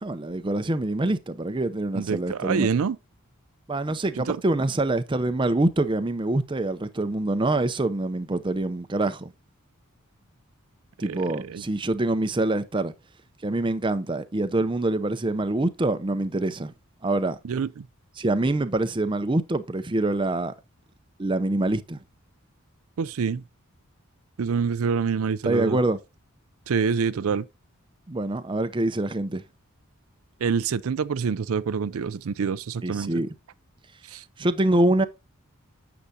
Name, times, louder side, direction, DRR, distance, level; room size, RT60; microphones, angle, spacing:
voice 1, 0.0-2.7 3.7-9.3 11.0-12.9 13.4-16.7 17.0-17.4 18.2-20.5 21.2-22.0 25.5-26.0 28.1-29.4 32.8-33.3 34.4-35.0, right 2 dB, 20° right, 0.5 m, -25 dB
voice 2, 1.9-3.0 4.2-4.4 11.0-11.6 17.4-17.9 23.0-23.4 24.4-25.8 26.7-27.5 30.4-33.2 34.1-34.2, right 6 dB, 75° right, 0.4 m, -26 dB
9.8 x 6.9 x 2.7 m
head